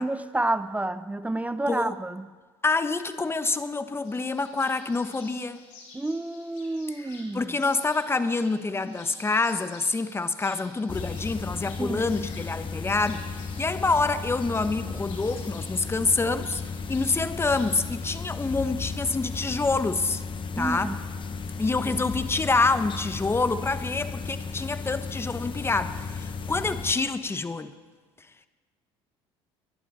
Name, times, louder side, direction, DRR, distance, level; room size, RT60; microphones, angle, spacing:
voice 1, 0.0-2.3 5.9-7.4 11.8-12.1 20.6-21.0, right 2 dB, 10° right, 0.6 m, -29 dB
voice 2, 2.6-5.6 7.3-16.6 16.9-20.2 20.6-20.9 21.6-27.7, left 3 dB, 20° left, 1.0 m, -27 dB
sound 1, 4.0-18.1, left 3 dB, 70° left, 4.2 m, -51 dB
sound 2, 10.9-26.9, left 4 dB, 35° left, 1.2 m, -35 dB
22.0 x 11.0 x 4.2 m
hypercardioid pair, 75°, 14 cm